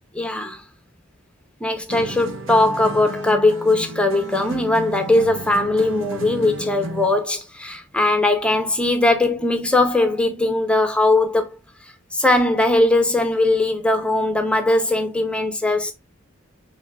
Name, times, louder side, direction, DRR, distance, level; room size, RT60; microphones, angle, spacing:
voice 1, 0.1-0.6 1.6-11.6 12.1-15.9, left 2 dB, 5° left, 0.6 m, -19 dB
sound 1, 1.9-7.2, right 2 dB, 75° right, 0.9 m, -33 dB
6.7 x 3.0 x 2.3 m
head